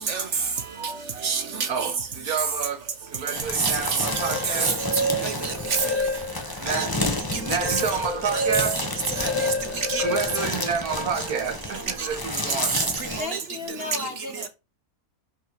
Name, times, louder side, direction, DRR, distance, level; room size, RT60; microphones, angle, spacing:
voice 1, 0.4-1.3 1.7-4.7 6.6-7.0 7.3-8.9 10.0-12.8, right 6 dB, 80° right, 1.8 m, -30 dB
sound 1, 3.3-13.2, left 1 dB, 15° left, 1.4 m, -31 dB
sound 2, 3.9-6.6 7.0-11.3, left 1 dB, 85° left, 2.1 m, -30 dB
voice 2, 5.2-5.5 6.7-6.9 7.3-7.4 7.7-7.8 8.3-8.4 9.2-10.0 12.0-12.1 12.7-12.8 13.1-13.4, right 5 dB, 55° right, 1.2 m, -28 dB
voice 3, 13.2-14.5, left 3 dB, 40° left, 1.8 m, -34 dB
11.5 x 4.3 x 4.8 m
omnidirectional pair, 1.5 m